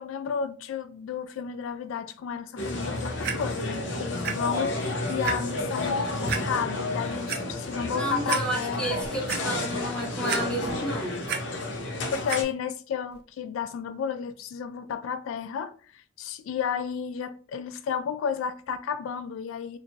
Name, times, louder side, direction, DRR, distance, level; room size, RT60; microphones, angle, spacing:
voice 1, 0.0-9.0 12.1-19.8, left 7 dB, 80° left, 0.3 m, -32 dB
sound 1, 2.6-12.4, left 2 dB, 60° left, 0.7 m, -31 dB
Clock, 3.2-3.3 4.2-4.3 4.8-4.9 5.2-5.3 6.3-6.4 7.1-7.4 7.9-8.0 8.3-8.4 8.9-9.4 10.3-10.8 11.1-11.4 12.3-12.4 13.1-13.2, right 7 dB, 50° right, 0.5 m, -30 dB
voice 2, 7.9-11.2, right 1 dB, 5° left, 1.1 m, -31 dB
4.3 x 2.5 x 2.8 m
head